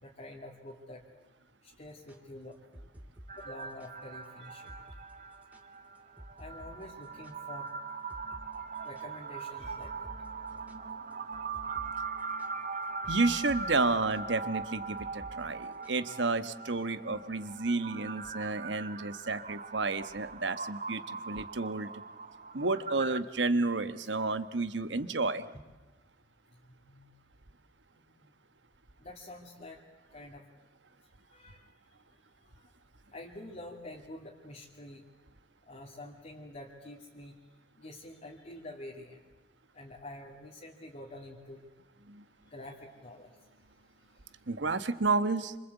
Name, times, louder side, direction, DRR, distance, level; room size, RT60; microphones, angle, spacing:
voice 1, 0.0-1.1 1.6-2.6 3.4-4.7 6.4-7.7 8.8-10.1 26.7-27.1 29.0-29.8 30.1-30.4 31.3-31.7 33.1-35.0 35.7-37.4 37.8-39.2 39.7-41.6 42.5-43.3, left 1 dB, 40° left, -3 dB, 2.6 m, -47 dB
sound 1, 1.9-3.9 4.2-4.3 4.7-5.0 5.3-7.7 8.1-8.5 8.8-16.1, equal, 10° right, 2.2 m, -52 dB
sound 2, 3.3-23.2, right 4 dB, 45° right, 1.0 m, -41 dB
voice 2, 13.1-21.9 22.5-25.4 42.1-42.2 44.5-45.5, right 3 dB, 75° right, 11 dB, 1.3 m, -31 dB
28.0 x 25.5 x 8.2 m, 1.2 s
head